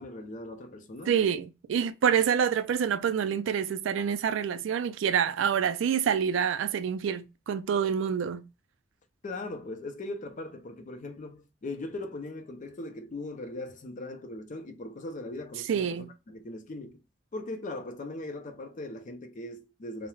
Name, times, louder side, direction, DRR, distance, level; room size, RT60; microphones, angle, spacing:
voice 1, 0.0-1.2 9.2-17.0 17.3-20.1, left 2 dB, 40° left, 0.4 m, -39 dB
voice 2, 1.1-8.5 15.7-16.1, right 7 dB, 70° right, 0.3 m, -27 dB
2.3 x 2.0 x 3.0 m
head